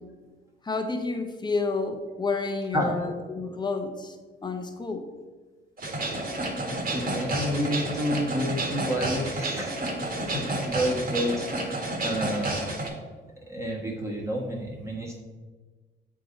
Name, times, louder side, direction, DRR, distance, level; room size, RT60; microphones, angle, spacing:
voice 1, 0.6-4.2 4.4-5.1, left 3 dB, 20° left, 5 dB, 0.8 m, -30 dB
sound 1, 5.8-12.9, right 2 dB, 50° right, 1.7 m, -30 dB
voice 2, 5.9-6.2 6.6-12.8 13.5-15.2, equal, 15° right, -2 dB, 1.3 m, -30 dB
7.7 x 3.8 x 3.9 m, 1.3 s
cardioid pair, 90°, 20 cm